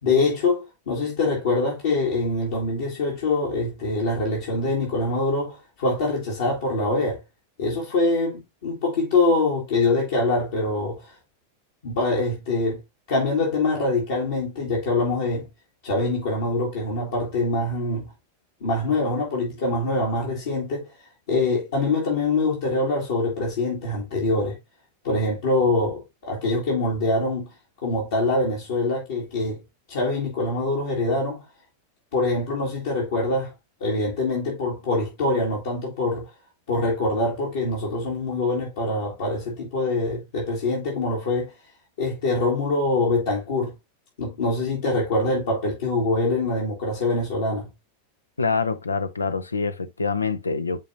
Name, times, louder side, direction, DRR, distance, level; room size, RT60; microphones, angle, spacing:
voice 1, 0.0-7.2 7.6-11.1 11.8-12.8 13.1-15.5 15.8-18.1 18.6-24.6 25.0-27.5 27.8-29.6 29.9-31.4 32.1-33.5 33.8-36.3 36.7-41.5 42.0-43.7 44.2-47.7, left 2 dB, 60° left, 2.4 m, -24 dB
voice 2, 48.4-50.8, left 4 dB, 75° left, 0.7 m, -25 dB
10.0 x 3.7 x 2.8 m
figure-of-eight pair, 90°, 0 cm